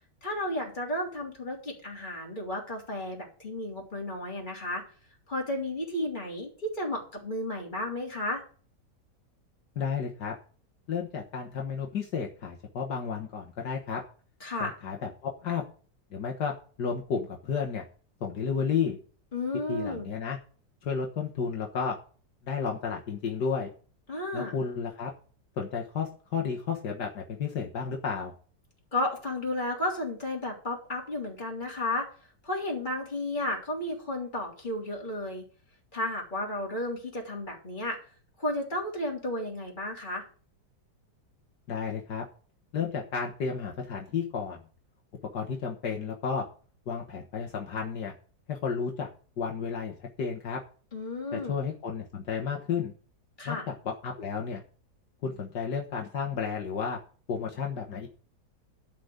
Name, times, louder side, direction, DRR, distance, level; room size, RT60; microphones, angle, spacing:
voice 1, 0.2-4.8 5.3-8.4 14.4-14.7 19.3-20.1 24.1-24.6 28.9-32.1 32.4-35.4 35.9-38.0 38.4-40.2 50.9-51.6 53.4-53.7, left 1 dB, 25° left, -1 dB, 3.5 m, -33 dB
voice 2, 9.8-10.3 10.9-14.0 14.6-15.6 16.1-16.5 16.8-17.8 18.2-19.0 19.7-20.4 20.8-22.0 22.4-23.7 24.3-25.1 25.6-28.3 41.7-42.2 42.7-44.6 45.3-46.4 46.9-48.1 48.5-49.1 49.4-50.6 51.3-52.9 53.5-53.7 54.0-54.6 55.2-57.0 57.3-58.1, left 6 dB, 75° left, 1 dB, 2.0 m, -32 dB
12.0 x 5.2 x 8.0 m, 0.42 s
omnidirectional pair, 1.8 m